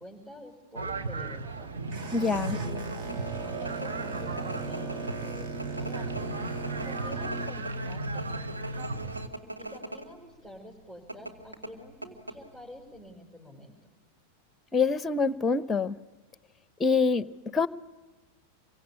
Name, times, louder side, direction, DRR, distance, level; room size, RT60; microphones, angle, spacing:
voice 1, 0.0-1.7 2.0-3.1 3.4-13.9, equal, 20° right, -1 dB, 5.5 m, -48 dB
sound 1, 0.8-9.3, right 3 dB, 65° right, 1.5 m, -36 dB
Boat Water vehicle, 1.3-7.5, right 3 dB, 45° right, 2.5 m, -39 dB
voice 2, 2.1-2.6 14.7-15.9 16.8-17.7, left 4 dB, 15° left, 16 dB, 0.9 m, -25 dB
sound 2, 2.3-10.1 10.4-10.5 11.1-12.8 13.0-13.1, right 1 dB, 85° right, 2.6 m, -41 dB
27.0 x 23.5 x 8.6 m, 1.2 s
figure-of-eight pair, 90°, 0 cm